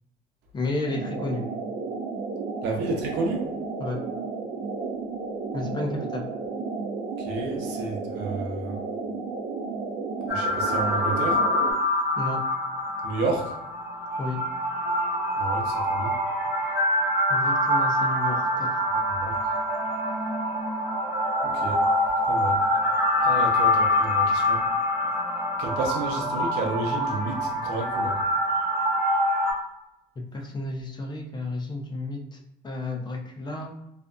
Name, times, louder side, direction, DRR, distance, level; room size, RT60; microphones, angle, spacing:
voice 1, 0.5-1.4 3.8-4.0 5.5-6.2 12.2-12.4 14.2-14.4 17.3-18.7 30.3-32.4 32.6-33.7, left 2 dB, 25° left, 1 dB, 0.5 m, -32 dB
sound 1, 0.9-11.7, right 4 dB, 45° right, 0.5 m, -33 dB
voice 2, 2.6-3.5 7.2-8.7 10.3-11.4 13.0-13.5 15.4-16.1 19.2-19.3 21.4-21.8 22.2-22.6 23.2-24.6 25.6-28.1, right 3 dB, 90° right, 1 dB, 0.7 m, -31 dB
sound 2, 10.3-29.5, left 1 dB, 15° right, 1.0 m, -25 dB
2.6 x 2.4 x 2.2 m, 0.84 s
cardioid pair, 110°, 17 cm